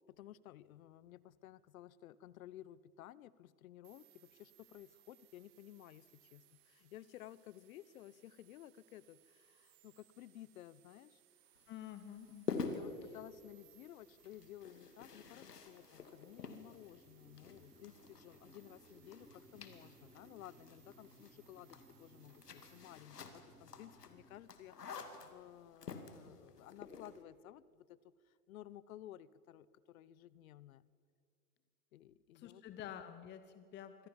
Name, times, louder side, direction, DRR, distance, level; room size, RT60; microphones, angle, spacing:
voice 1, 0.1-11.2 12.7-28.0 28.2-30.9 31.9-32.6, left 13 dB, 65° left, 20 dB, 1.0 m, -55 dB
sound 1, 3.8-23.0, right 15 dB, 50° right, 2.1 m, -70 dB
sound 2, 11.6-27.2, left 5 dB, 85° left, 2.4 m, -49 dB
voice 2, 11.7-12.7 32.3-34.1, left 10 dB, 25° left, 10 dB, 1.0 m, -49 dB
sound 3, 16.2-24.4, equal, ahead, 3.0 m, -64 dB
24.5 x 16.5 x 7.3 m, 2.2 s
hypercardioid pair, 115°, 46 cm